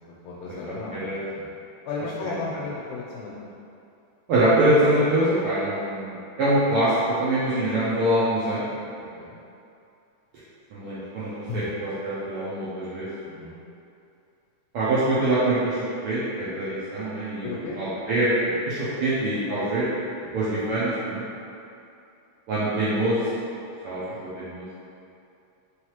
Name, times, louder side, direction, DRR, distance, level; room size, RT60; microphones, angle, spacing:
voice 1, 0.1-1.5 1.9-3.5 9.2-9.4 11.5-11.7 13.2-13.6 17.4-17.8 19.5-19.6 20.2-20.3 24.1-24.2, left 4 dB, 90° left, -5 dB, 2.0 m, -35 dB
voice 2, 0.9-1.2 2.2-2.3 4.3-6.9 7.2-8.6 10.7-13.1 14.7-17.5 17.8-19.9 20.3-21.2 22.5-23.2 23.8-24.0 24.4-24.7, right 1 dB, 85° right, -11 dB, 1.3 m, -24 dB
4.4 x 3.2 x 2.9 m, 2.6 s
omnidirectional pair, 3.3 m